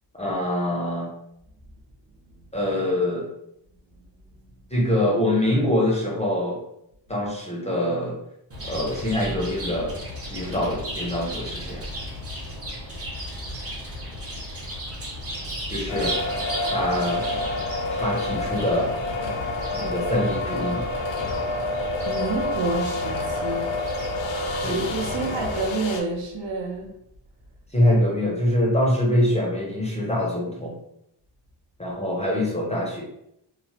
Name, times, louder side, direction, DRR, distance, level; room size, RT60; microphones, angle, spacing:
voice 1, 0.2-1.1 2.5-3.3 4.7-6.6 7.1-8.2 8.6-10.0 10.3-11.8 15.7-16.1 16.7-17.2 17.9-18.9 19.7-20.8 24.6-24.9 25.2-25.3 27.7-30.7 31.8-33.0, left 1 dB, 15° left, -4 dB, 0.4 m, -24 dB
Chirp tweet, 8.5-25.7, equal, 30° right, 0.7 m, -35 dB
sound 1, 15.9-26.0, left 2 dB, 85° left, 0.6 m, -28 dB
voice 2, 22.1-23.7 24.7-26.9, right 3 dB, 70° right, 0 dB, 0.7 m, -29 dB
3.0 x 2.0 x 2.8 m, 0.78 s
wide cardioid pair, 170°, 45 cm